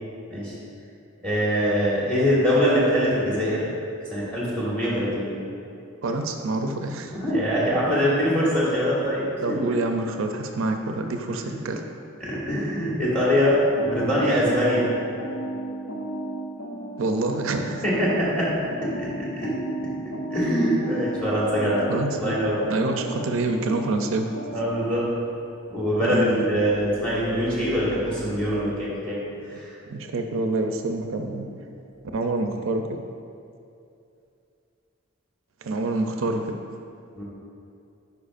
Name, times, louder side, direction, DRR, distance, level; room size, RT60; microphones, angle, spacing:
voice 1, 1.2-3.7 4.1-5.3 7.1-9.3 12.2-14.8 17.8-19.5 20.3-21.9 22.2-22.6 24.5-25.1 25.7-29.2 29.6-29.7 31.3-31.4 37.2-37.3, equal, 5° left, -7 dB, 1.5 m, -23 dB
voice 2, 6.0-7.1 9.4-11.8 17.0-17.8 21.9-22.3 22.7-24.3 26.0-26.5 29.9-31.5 32.1-33.0 35.6-36.6, right 2 dB, 75° right, 5 dB, 0.4 m, -27 dB
sound 1, 13.8-25.0, right 1 dB, 75° left, 0.8 m, -34 dB
10.0 x 4.6 x 2.5 m, 2.6 s
head